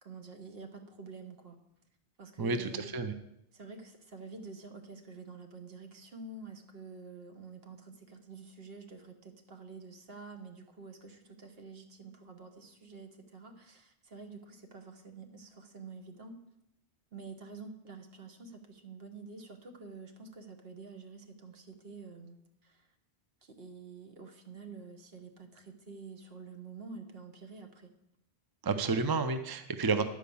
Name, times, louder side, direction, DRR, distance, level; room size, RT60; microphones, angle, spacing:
voice 1, 0.0-1.6 2.2-2.9 3.5-16.4 17.1-22.9 23.4-27.9, right 4 dB, 65° right, 4 dB, 1.4 m, -48 dB
voice 2, 2.4-3.1 28.6-30.0, right 4 dB, 30° right, 9 dB, 0.4 m, -30 dB
10.5 x 4.9 x 7.0 m, 0.82 s
omnidirectional pair, 1.1 m